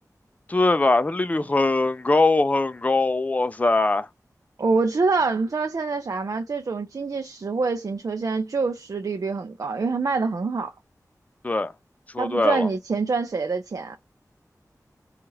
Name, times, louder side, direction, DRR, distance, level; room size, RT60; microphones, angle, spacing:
voice 1, 0.5-4.1 11.4-11.7 12.1-12.7, left 2 dB, 25° left, 0.4 m, -21 dB
voice 2, 4.6-10.7 12.2-14.0, right 4 dB, 60° right, 0.4 m, -25 dB
2.8 x 2.4 x 3.0 m
wide cardioid pair, 80°, 6 cm